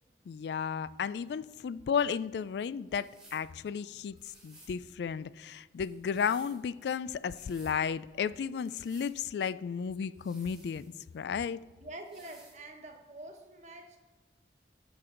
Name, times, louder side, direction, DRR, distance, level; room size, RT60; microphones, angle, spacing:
voice 1, 0.3-4.2 4.4-10.9 11.1-11.6, left 7 dB, 70° left, 0.3 m, -33 dB
sound 1, 2.9-3.5 4.2-4.8 5.8-6.6 7.2-7.8 8.5-9.1 10.1-11.2 12.0-12.6, right 1 dB, 5° right, 2.9 m, -58 dB
voice 2, 11.8-14.0, right 1 dB, 40° right, 1.3 m, -46 dB
18.0 x 6.1 x 3.8 m
head